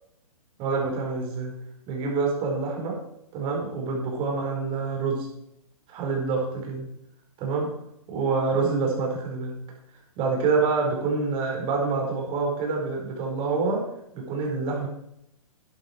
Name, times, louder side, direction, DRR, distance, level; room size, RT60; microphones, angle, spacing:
voice 1, 0.6-1.5 1.9-3.0 3.3-5.3 5.9-6.9 7.4-7.7 8.1-9.5 10.2-13.8 14.1-14.9, right 4 dB, 30° right, 0 dB, 4.6 m, -26 dB
13.0 x 10.5 x 4.5 m, 0.79 s
figure-of-eight pair, 130°, 19 cm